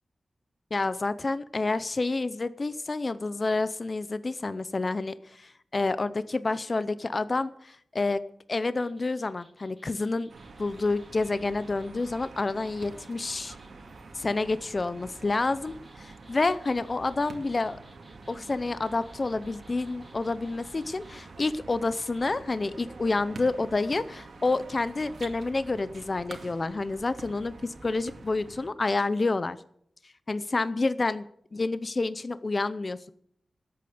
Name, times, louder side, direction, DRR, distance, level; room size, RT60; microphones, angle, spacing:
voice 1, 0.7-8.2 8.5-10.3 10.6-13.6 14.1-17.8 18.3-29.6 30.3-31.2 31.5-33.1, left 3 dB, 35° left, 14 dB, 0.6 m, -29 dB
sound 1, 8.8-13.7 15.0-21.2, equal, 15° left, 7.4 m, -60 dB
sound 2, 10.3-28.7, right 3 dB, 65° right, 2.2 m, -47 dB
19.0 x 8.6 x 7.9 m, 0.66 s
wide cardioid pair, 150°, 0 cm